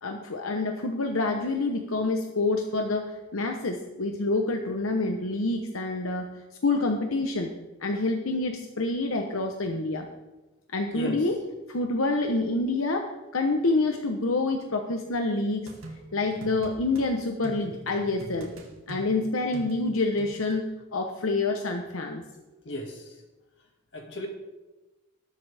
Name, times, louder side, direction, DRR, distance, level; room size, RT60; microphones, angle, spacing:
voice 1, 0.0-6.3 6.6-7.5 7.8-10.1 10.7-11.4 11.7-15.7 16.1-18.5 18.9-20.6 20.9-22.2, left 2 dB, 90° left, 3 dB, 1.0 m, -27 dB
sound 1, 15.7-17.1 17.4-20.6, right 1 dB, 85° right, 2.3 m, -43 dB
voice 2, 22.6-23.1 23.9-24.3, left 1 dB, 60° left, 2 dB, 2.2 m, -35 dB
20.0 x 7.7 x 3.5 m, 1.1 s
head